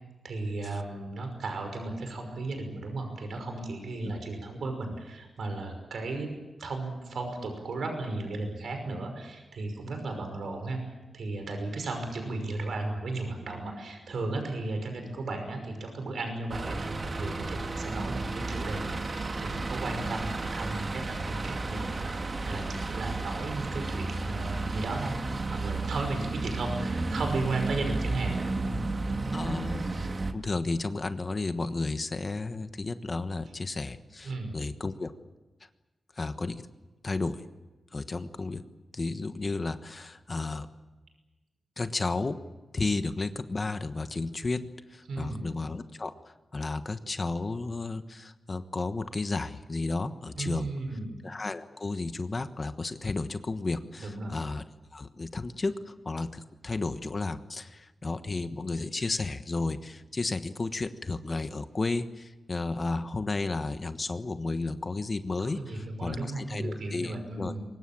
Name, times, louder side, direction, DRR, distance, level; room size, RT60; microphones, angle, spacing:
voice 1, 0.2-6.3 6.6-10.8 11.1-25.1 25.4-28.8 34.2-34.5 45.1-45.4 50.4-51.1 54.0-54.3 65.4-67.6, right 2 dB, 80° right, 5 dB, 5.7 m, -35 dB
sound 1, 16.5-30.3, right 3 dB, 40° right, 1.9 m, -33 dB
voice 2, 29.3-30.1 30.3-35.1 36.1-36.7 37.0-37.4 37.9-38.6 38.9-40.7 41.8-42.4 42.7-46.1 46.5-50.7 51.2-54.6 54.9-67.5, left 3 dB, 35° left, 9 dB, 1.3 m, -33 dB
24.0 x 20.5 x 8.8 m, 1.1 s
wide cardioid pair, 100°, 0 cm